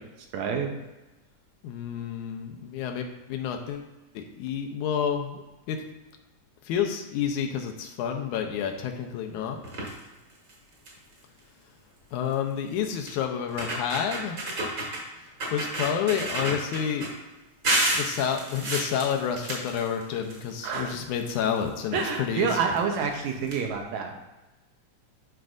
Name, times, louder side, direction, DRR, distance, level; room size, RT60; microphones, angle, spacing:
voice 1, 0.3-0.7 20.6-20.9 21.9-24.3, right 6 dB, 75° right, 3 dB, 2.0 m, -28 dB
voice 2, 1.6-3.9 4.2-5.4 5.7-5.8 6.7-9.6 12.1-14.4 15.5-17.1 17.9-22.5, left 8 dB, 80° left, 3 dB, 2.1 m, -29 dB
sound 1, 9.6-10.0 10.5-10.6 10.9-11.1 12.3-12.4 13.1-13.2 13.5-15.0 15.4-17.1 17.6-20.4 20.7-21.8 22.7-22.8 23.1-23.2 23.5-23.6, right 1 dB, 40° right, 1.9 m, -30 dB
11.5 x 4.6 x 2.5 m, 1.1 s
omnidirectional pair, 3.5 m